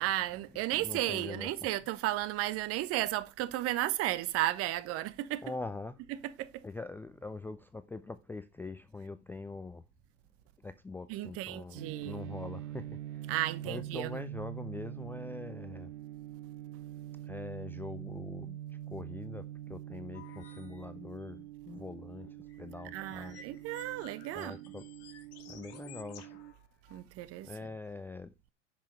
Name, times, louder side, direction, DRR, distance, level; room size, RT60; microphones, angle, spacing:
voice 1, 0.0-5.4 6.1-6.6 11.1-12.2 13.3-14.2 22.9-24.7 26.9-27.5, right 15 dB, 40° right, 1.1 m, -34 dB
voice 2, 0.8-1.5 5.4-6.0 6.6-9.8 10.6-13.3 13.6-15.9 17.3-18.6 18.9-22.3 22.6-23.4 24.3-24.8 25.5-26.3 27.4-28.3, left 3 dB, 5° left, 0.4 m, -43 dB
sound 1, 11.7-26.5, right 13 dB, 70° right, 0.7 m, -44 dB
sound 2, 20.1-20.9 21.2-21.3 22.2-27.0, left 8 dB, 45° left, 2.9 m, -55 dB
10.0 x 5.9 x 4.4 m
figure-of-eight pair, 85°, 36 cm